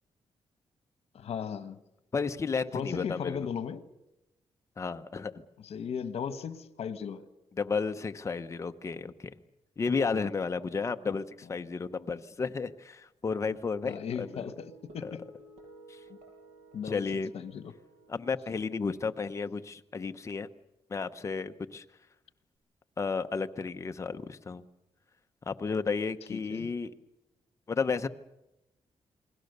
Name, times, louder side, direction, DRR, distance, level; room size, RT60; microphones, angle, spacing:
voice 1, 1.1-1.8 2.7-3.8 5.6-7.3 13.8-15.2 16.7-17.0 17.3-17.7 26.3-26.7, left 7 dB, 65° left, 1.3 m, -36 dB
voice 2, 2.1-3.5 4.8-5.3 7.6-9.3 9.8-14.5 15.0-15.1 15.9-16.0 16.9-17.3 18.1-20.5 20.9-21.8 23.0-24.6 25.5-26.9 27.7-28.1, left 5 dB, 25° left, 0.8 m, -32 dB
sound 1, 13.5-20.1, right 2 dB, 90° right, 7.8 m, -56 dB
29.0 x 21.5 x 6.7 m
wide cardioid pair, 180°, 11 cm